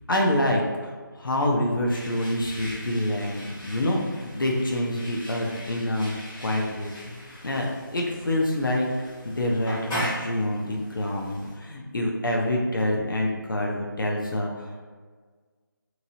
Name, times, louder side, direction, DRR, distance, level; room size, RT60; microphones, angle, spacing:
voice 1, 0.1-6.1 6.4-8.9 9.2-14.8, left 1 dB, 70° left, -1 dB, 0.6 m, -26 dB
sound 1, 1.9-11.5, equal, 10° left, 0.7 m, -39 dB
2.9 x 2.7 x 2.7 m, 1.5 s
figure-of-eight pair, 160°, 11 cm